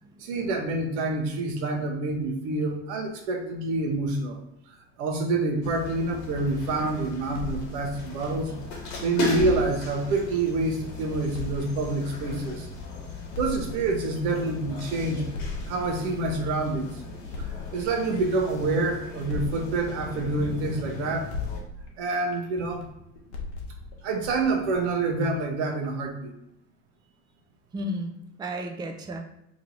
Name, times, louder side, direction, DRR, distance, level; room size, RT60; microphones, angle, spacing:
voice 1, 0.2-4.4 4.7-8.5 8.8-12.7 13.3-15.2 15.7-17.0 17.4-21.3 22.0-22.8 24.0-26.4, right 3 dB, 80° right, 2 dB, 0.9 m, -27 dB
sound 1, 5.6-21.6, left 3 dB, 65° left, 1.1 m, -37 dB
sound 2, 6.5-8.9 9.3-12.9 13.3-16.9 17.3-21.0 21.3-25.4, left 2 dB, 85° left, 0.9 m, -39 dB
voice 2, 27.7-29.2, equal, 15° right, 4 dB, 0.4 m, -33 dB
3.0 x 2.7 x 3.9 m, 0.81 s
supercardioid pair, 90°, 33 cm